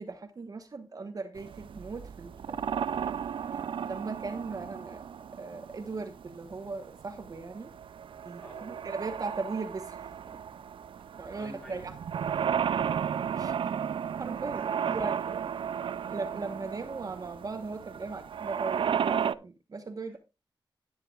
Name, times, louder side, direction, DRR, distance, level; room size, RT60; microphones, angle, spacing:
voice 1, 0.0-2.6 3.8-5.0 5.4-7.7 8.2-10.0 10.3-10.4 11.2-11.9 13.4-13.5 14.2-14.6 14.9-15.2 16.1-20.2, right 3 dB, 45° right, 7 dB, 1.1 m, -38 dB
sound 1, 1.4-19.3, right 8 dB, 80° right, 0.4 m, -34 dB
voice 2, 8.4-8.8 11.3-11.9 13.0-13.8 14.5-15.8 18.7-18.8 20.1-20.2, equal, 15° left, 1 dB, 4.3 m, -50 dB
11.0 x 10.0 x 2.4 m, 0.27 s
wide cardioid pair, 145°, 9 cm